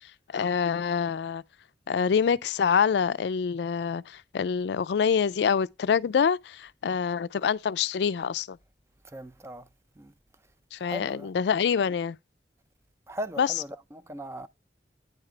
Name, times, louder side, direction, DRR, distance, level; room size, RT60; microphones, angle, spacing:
voice 1, 0.3-1.4 1.9-8.6 10.7-12.2 13.4-13.5, left 6 dB, 70° left, 0.3 m, -26 dB
voice 2, 9.0-9.7 10.0-10.1 10.8-11.3 13.1-14.5, equal, 15° right, 0.4 m, -39 dB
9.5 x 3.3 x 4.8 m
head